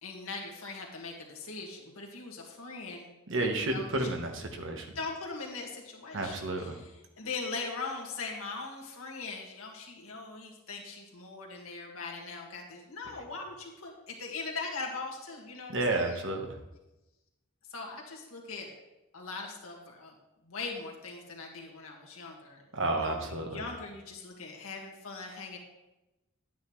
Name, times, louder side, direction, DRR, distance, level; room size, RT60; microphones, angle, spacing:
voice 1, 0.0-3.1 3.4-4.1 5.0-16.2 17.7-18.7 19.1-20.1 20.4-25.6, left 4 dB, 85° left, 0 dB, 1.9 m, -41 dB
voice 2, 3.3-4.9 6.1-6.8 15.7-16.4 22.7-23.6, right 2 dB, 65° right, 3 dB, 1.3 m, -31 dB
10.5 x 9.3 x 3.2 m, 0.99 s
head